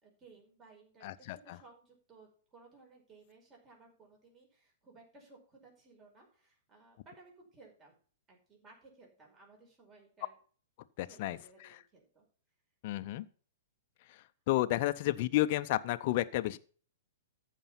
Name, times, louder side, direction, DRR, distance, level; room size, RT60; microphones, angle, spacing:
voice 1, 0.0-8.0 8.3-10.4 11.0-12.3, right 3 dB, 25° right, -1 dB, 5.3 m, -59 dB
voice 2, 1.0-1.6 11.0-11.4 12.8-13.2 14.1-14.2 14.5-16.6, left 16 dB, 50° left, 11 dB, 0.6 m, -31 dB
14.5 x 5.4 x 5.8 m, 0.43 s
figure-of-eight pair, 110°, 0 cm